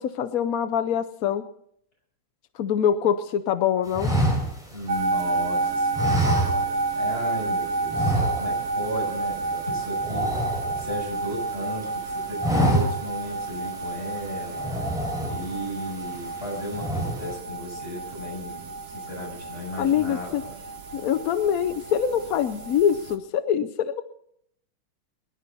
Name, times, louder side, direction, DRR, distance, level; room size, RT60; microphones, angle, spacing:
voice 1, 0.0-1.4 2.6-4.1 19.8-20.4 20.9-24.0, left 9 dB, 70° left, 10 dB, 0.8 m, -24 dB
sound 1, 3.9-5.4 5.9-7.0 7.3-7.5 7.9-8.8 9.1-9.3 9.6-11.3 11.7-12.0 12.3-13.2 13.7-13.8 14.5-15.7 16.1-16.5 16.7-17.3, right 1 dB, ahead, 3.7 m, -26 dB
voice 2, 4.7-15.0 15.3-18.7 18.9-20.5, equal, 25° left, -3 dB, 7.6 m, -35 dB
sound 2, 4.9-23.2, right 3 dB, 40° right, 1.1 m, -30 dB
22.5 x 11.0 x 4.1 m, 0.71 s
omnidirectional pair, 2.2 m